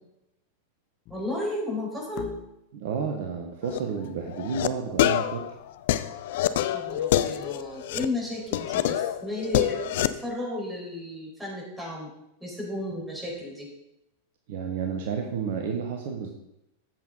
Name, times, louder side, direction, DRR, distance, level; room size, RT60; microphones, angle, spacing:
sound 1, 1.0-1.5 2.2-2.8 5.2-5.5 5.7-5.8 6.3-6.7 7.1-8.0 8.5-8.6, left 8 dB, 35° left, 1.2 m, -45 dB
voice 1, 1.1-2.3 6.5-12.1 12.4-13.7, left 1 dB, 5° right, -3 dB, 4.9 m, -33 dB
voice 2, 2.7-5.4 14.5-16.3, right 6 dB, 50° right, 3 dB, 1.3 m, -31 dB
sound 2, 3.6-3.8 4.3-4.7 5.0-8.0 8.5-10.1, left 13 dB, 55° left, 0.5 m, -26 dB
13.5 x 8.2 x 4.0 m, 0.85 s
figure-of-eight pair, 90°, 0 cm